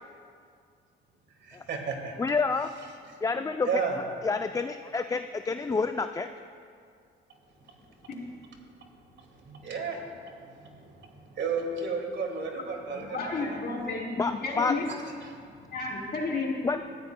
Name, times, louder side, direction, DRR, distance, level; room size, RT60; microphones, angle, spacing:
voice 1, 1.4-2.1 3.6-4.0 9.2-13.6 15.2-15.8, right 5 dB, 65° right, 2 dB, 2.1 m, -34 dB
voice 2, 2.2-2.7 3.2-3.8 4.2-6.3 14.2-14.7 16.6-16.8, left 4 dB, 15° left, 8 dB, 0.3 m, -28 dB
voice 3, 12.9-14.1 14.4-14.9 15.7-16.6, left 3 dB, 55° left, -2 dB, 3.3 m, -31 dB
19.0 x 13.5 x 2.2 m, 2.2 s
cardioid pair, 90°, 20 cm